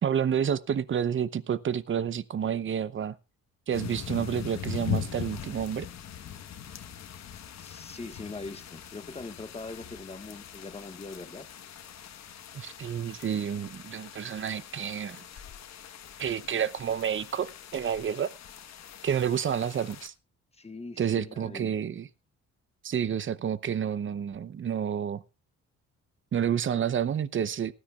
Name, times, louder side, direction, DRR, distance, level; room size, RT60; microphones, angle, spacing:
voice 1, 0.0-3.2 3.7-5.9 12.5-15.2 16.2-18.3 19.0-20.1 21.0-22.1 22.8-25.2 26.3-27.7, right 8 dB, 40° right, 0.8 m, -29 dB
sound 1, 3.7-20.1, left 8 dB, 60° left, 1.3 m, -41 dB
voice 2, 7.6-11.5 20.5-21.7, left 3 dB, 20° left, 1.5 m, -42 dB
18.5 x 13.5 x 2.4 m
cardioid pair, 90°, 30 cm